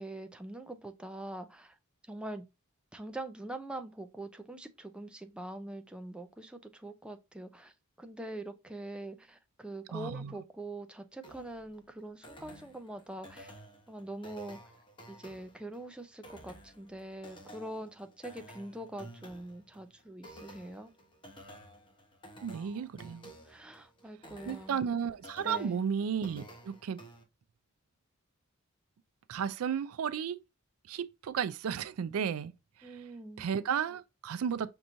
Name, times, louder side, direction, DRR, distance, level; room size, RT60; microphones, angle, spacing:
voice 1, 0.0-1.8 2.1-2.4 2.9-7.7 8.0-13.5 13.9-14.6 15.1-20.9 23.5-24.8 25.4-25.8 32.8-33.5, right 1 dB, 5° right, 0.4 m, -43 dB
voice 2, 9.9-10.4 22.4-23.3 24.5-27.0 29.3-30.4 30.9-32.5 32.8-33.1 33.4-34.7, right 7 dB, 75° right, 0.4 m, -34 dB
sound 1, 11.2-27.2, right 1 dB, 20° left, 0.9 m, -53 dB
5.4 x 3.0 x 2.5 m
head